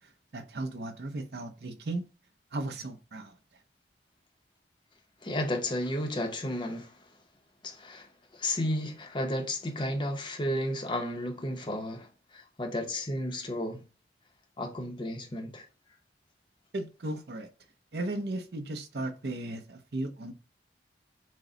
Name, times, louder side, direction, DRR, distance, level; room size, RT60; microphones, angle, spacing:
voice 1, 0.3-2.1 2.5-3.4 16.7-17.5 17.9-20.3, right 2 dB, 65° right, 0.6 m, -35 dB
voice 2, 5.2-7.1 7.6-13.8 14.6-15.6, left 1 dB, 25° left, 0.6 m, -33 dB
6.2 x 2.1 x 3.8 m
head